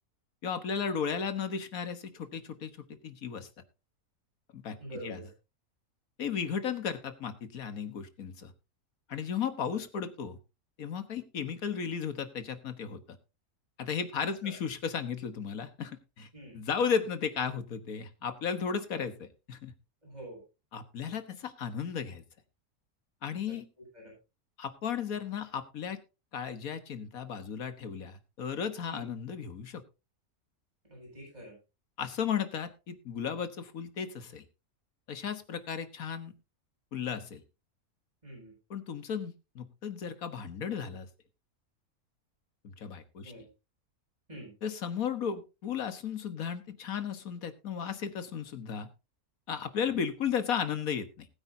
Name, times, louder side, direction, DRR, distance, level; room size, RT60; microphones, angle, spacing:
voice 1, 0.4-3.5 4.5-4.8 5.0-5.2 6.2-8.5 9.1-10.4 10.8-13.2 13.8-16.3 16.5-19.7 20.7-22.2 23.2-23.7 24.6-26.0 26.3-29.8 32.0-34.4 35.1-36.3 36.9-37.4 38.7-41.1 42.6-43.3 44.6-48.9 49.5-51.3, left 7 dB, 70° left, 10 dB, 1.7 m, -35 dB
voice 2, 4.8-5.3 14.4-14.5 16.3-16.6 20.0-20.4 23.5-23.6 23.9-24.1 28.9-29.1 30.9-31.6 38.2-38.5 43.2-43.5 44.3-44.5, right 1 dB, 25° right, -2 dB, 8.3 m, -45 dB
19.5 x 8.9 x 2.7 m, 0.28 s
omnidirectional pair, 1.6 m